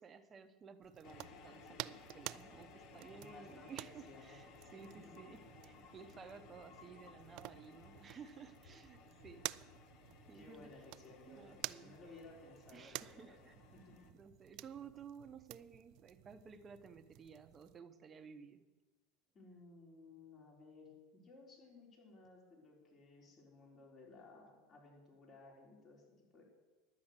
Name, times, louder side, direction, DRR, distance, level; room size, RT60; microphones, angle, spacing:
voice 1, 0.0-9.5 10.3-10.7 11.3-11.9 12.7-13.5 14.2-18.6, right 6 dB, 30° right, 10 dB, 0.9 m, -55 dB
sound 1, 0.8-17.8, right 18 dB, 60° right, 0.3 m, -52 dB
sound 2, 1.0-14.1, left 4 dB, 55° left, 1.2 m, -59 dB
voice 2, 3.1-4.4 4.9-5.2 10.3-13.4 13.7-14.1 19.3-26.0 26.3-26.4, left 3 dB, 35° left, -2 dB, 3.9 m, -58 dB
11.5 x 8.5 x 6.5 m, 1.3 s
supercardioid pair, 105°, 0 cm